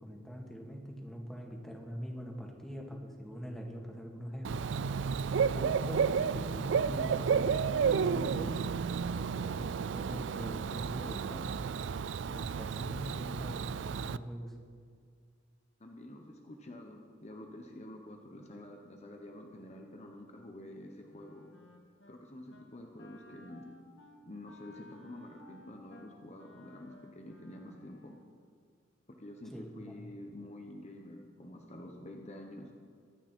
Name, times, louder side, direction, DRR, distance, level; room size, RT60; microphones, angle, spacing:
voice 1, 0.0-4.6 5.5-7.5 7.8-8.5 9.1-11.6 12.3-14.5 29.5-30.1, equal, ahead, 0 dB, 2.1 m, -43 dB
Bird / Cricket, 4.4-14.2, right 6 dB, 70° right, 0.4 m, -32 dB
voice 2, 15.8-21.4 22.1-23.7 24.2-28.1 29.1-32.7, left 1 dB, 40° left, 2 dB, 1.2 m, -48 dB
Wind instrument woodwind instrument, 21.0-22.2 22.5-22.7 23.0-28.3, left 2 dB, 80° left, 1.9 m, -57 dB
24.0 x 9.1 x 4.6 m, 2.1 s
head